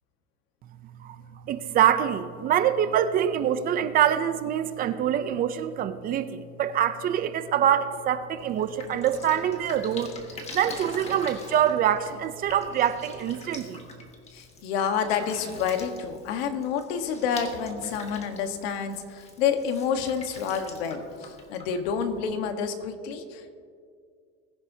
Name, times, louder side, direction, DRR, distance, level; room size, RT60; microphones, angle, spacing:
voice 1, 1.0-10.1 10.5-13.8, right 10 dB, 30° right, 12 dB, 0.4 m, -25 dB
Drip, 8.4-22.5, left 3 dB, 20° left, 1.4 m, -45 dB
voice 2, 14.3-23.6, left 7 dB, 90° left, 7 dB, 1.3 m, -29 dB
21.0 x 10.5 x 2.8 m, 2.2 s
cardioid pair, 155°, 30 cm